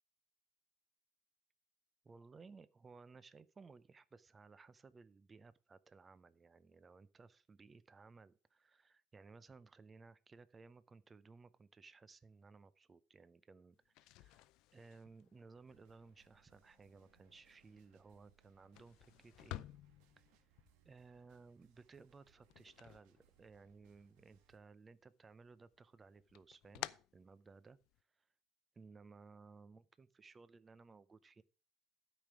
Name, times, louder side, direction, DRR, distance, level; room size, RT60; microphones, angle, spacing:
voice 1, 2.0-14.4 14.7-19.7 20.8-27.8 28.8-31.4, right 4 dB, 20° right, 0.5 m, -60 dB
sound 1, 13.8-23.8 24.2-25.0 25.4-28.0, left 17 dB, 65° left, 0.4 m, -54 dB
sound 2, 15.7-24.6, right 11 dB, 80° right, 1.3 m, -74 dB
12.5 x 5.2 x 6.0 m
cardioid pair, 150°, 0 cm